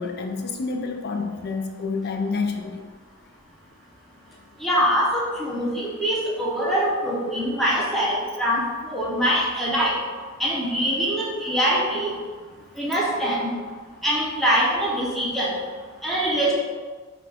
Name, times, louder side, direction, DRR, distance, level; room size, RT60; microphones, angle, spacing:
voice 1, 0.0-2.8, left 4 dB, 50° left, 3 dB, 0.4 m, -28 dB
voice 2, 4.6-10.0 10.4-12.1 12.8-13.5 14.0-15.5 16.0-16.5, equal, ahead, -6 dB, 0.8 m, -23 dB
5.7 x 2.4 x 3.4 m, 1.5 s
head